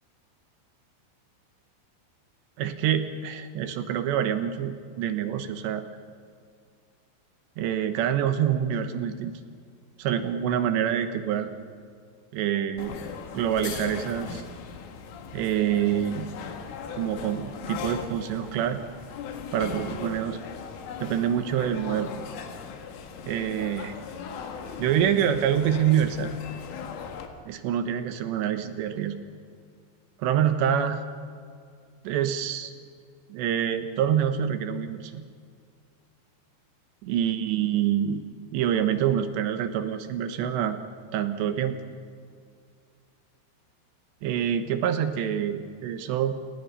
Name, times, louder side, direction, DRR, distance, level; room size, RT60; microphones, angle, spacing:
voice 1, 2.6-5.8 7.6-9.3 10.0-11.5 12.3-14.4 15.3-16.4 16.9-18.8 19.5-20.4 21.0-22.1 23.3-24.0 24.8-26.4 27.5-29.2 30.2-31.0 32.0-32.7 33.3-35.2 37.0-38.2 38.5-40.8 41.1-41.8 44.2-46.4, right 9 dB, 75° right, 9 dB, 3.1 m, -26 dB
sound 1, 12.8-27.3, left 6 dB, 85° left, 4.2 m, -38 dB
28.5 x 19.5 x 5.5 m, 2.2 s
omnidirectional pair, 5.5 m